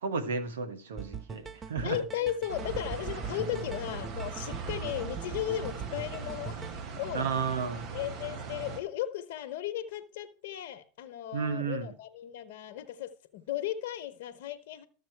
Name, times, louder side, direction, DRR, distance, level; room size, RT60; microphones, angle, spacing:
voice 1, 0.0-2.0 3.5-3.6 7.1-7.9 11.3-11.9, right 5 dB, 90° right, 1.4 m, -33 dB
sound 1, 1.0-6.8, right 6 dB, 25° right, 0.6 m, -42 dB
voice 2, 1.8-6.6 6.9-7.3 7.9-14.9, left 12 dB, 70° left, 1.0 m, -36 dB
sound 2, 2.5-8.8, right 4 dB, 50° right, 1.7 m, -40 dB
13.5 x 7.3 x 4.6 m
hypercardioid pair, 105°, 0 cm